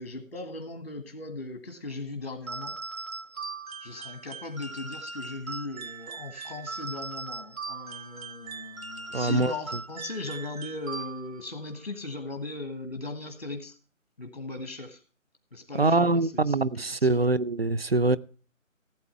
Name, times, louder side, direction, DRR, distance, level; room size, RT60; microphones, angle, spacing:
voice 1, 0.0-3.0 3.8-13.8 14.2-15.0 15.5-16.7 17.0-17.3, left 2 dB, 50° left, 1.6 m, -38 dB
sound 1, 2.5-11.5, right 4 dB, 80° right, 1.0 m, -39 dB
voice 2, 9.1-9.5 15.8-18.2, right 2 dB, 50° right, 0.5 m, -24 dB
15.5 x 8.2 x 4.3 m
figure-of-eight pair, 160°, 40 cm